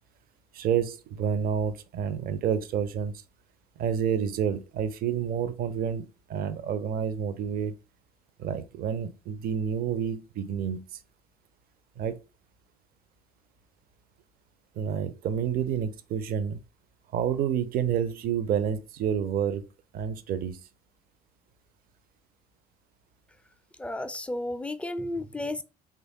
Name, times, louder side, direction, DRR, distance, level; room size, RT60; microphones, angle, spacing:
voice 1, 0.5-3.1 3.8-7.7 8.4-11.0 12.0-12.2 14.8-16.6 17.1-19.7 19.9-20.6, right 8 dB, 50° right, 0.5 m, -29 dB
voice 2, 23.8-25.6, left 1 dB, 5° left, 0.3 m, -33 dB
3.0 x 2.3 x 2.7 m
hypercardioid pair, 55°, 20 cm